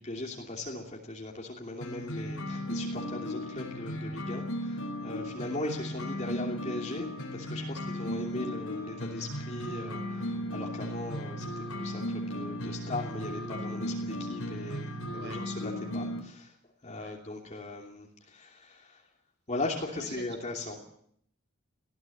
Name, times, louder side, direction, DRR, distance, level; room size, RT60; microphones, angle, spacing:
voice 1, 0.0-16.5 16.8-19.0 19.5-20.8, left 2 dB, 35° left, -1 dB, 2.9 m, -39 dB
sound 1, 1.8-16.2, equal, 85° left, 4.4 m, -36 dB
voice 2, 5.2-5.5 15.1-15.5 16.9-17.2 19.8-20.9, right 2 dB, 55° right, 8 dB, 5.3 m, -48 dB
20.0 x 15.5 x 9.1 m, 0.68 s
head